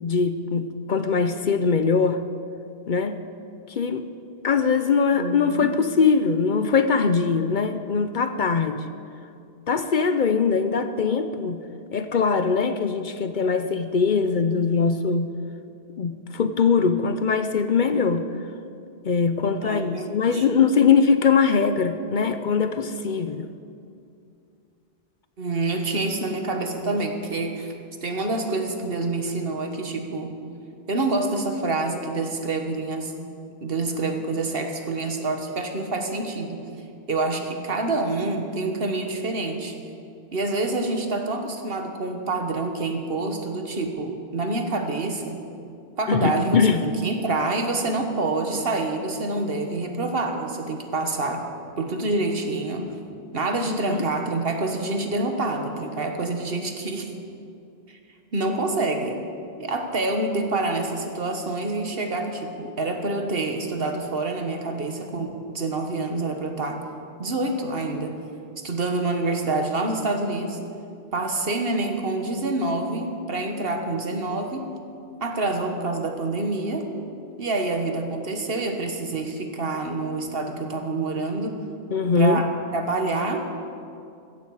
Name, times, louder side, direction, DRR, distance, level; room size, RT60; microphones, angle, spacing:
voice 1, 0.0-2.2 2.9-3.2 3.8-4.0 4.4-8.9 9.7-11.6 11.9-15.3 16.0-18.3 19.0-23.5 46.1-46.9 81.9-82.4, left 5 dB, 55° left, 10 dB, 0.7 m, -22 dB
voice 2, 5.1-5.8 19.6-20.4 25.4-27.7 28.0-30.4 30.9-33.1 33.6-36.6 37.1-39.7 40.3-45.4 46.0-51.4 51.8-52.9 53.3-57.1 57.9-58.0 58.3-59.2 59.6-66.8 67.2-68.2 68.6-70.6 71.1-74.7 75.2-76.9 77.4-81.6 82.2-83.6, right 2 dB, 65° right, 4 dB, 1.6 m, -27 dB
15.5 x 14.0 x 4.8 m, 2.5 s
omnidirectional pair, 1.1 m